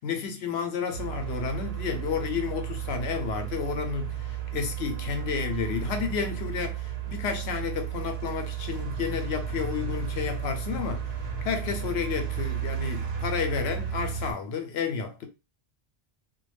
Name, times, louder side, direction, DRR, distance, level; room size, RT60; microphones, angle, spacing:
voice 1, 0.0-11.1 11.4-15.3, left 6 dB, 85° left, 0.9 m, -31 dB
sound 1, 0.9-14.3, right 8 dB, 80° right, 0.9 m, -33 dB
2.4 x 2.1 x 3.2 m
omnidirectional pair, 1.0 m